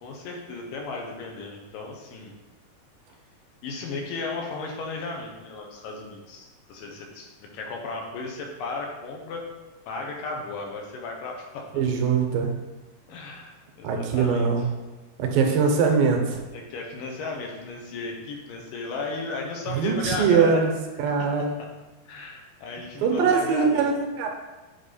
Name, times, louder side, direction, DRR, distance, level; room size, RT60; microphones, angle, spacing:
voice 1, 0.0-2.4 3.6-9.4 9.9-11.7 13.1-14.5 16.5-20.6 21.2-21.3 22.1-23.9, left 3 dB, 75° left, 1 dB, 2.4 m, -35 dB
voice 2, 11.7-12.5 13.8-14.7 15.2-16.4 19.7-20.7 21.0-21.5 23.0-24.3, right 5 dB, 80° right, 3 dB, 2.5 m, -22 dB
7.9 x 4.0 x 4.2 m, 1.2 s
omnidirectional pair, 4.2 m